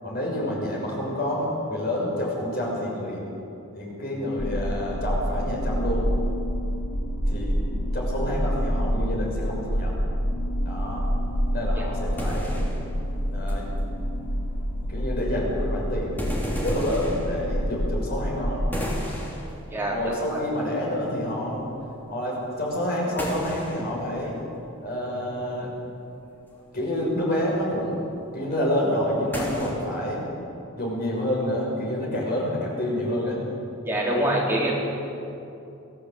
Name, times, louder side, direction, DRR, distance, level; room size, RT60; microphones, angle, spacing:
voice 1, 0.0-3.2 3.7-6.1 7.3-7.6 7.9-9.9 10.6-11.1 11.5-12.6 13.3-13.7 14.9-16.2 16.6-18.6 19.9-21.7 22.1-24.4 24.8-25.7 26.7-28.0 28.3-30.2 30.7-33.4, left 1 dB, 45° left, -3 dB, 6.3 m, -28 dB
sound 1, 4.4-18.8, equal, 75° left, 4.3 m, -27 dB
sound 2, 10.7-10.8 11.2-11.3 11.5-14.0 14.3-15.4 16.1-18.3 18.7-20.4 20.7-21.2 21.5-24.9 25.2-25.8 26.4-29.7, equal, 10° left, 3.2 m, -35 dB
voice 2, 33.8-34.7, right 1 dB, 10° right, -4 dB, 3.9 m, -24 dB
24.0 x 15.5 x 8.0 m, 2.8 s
head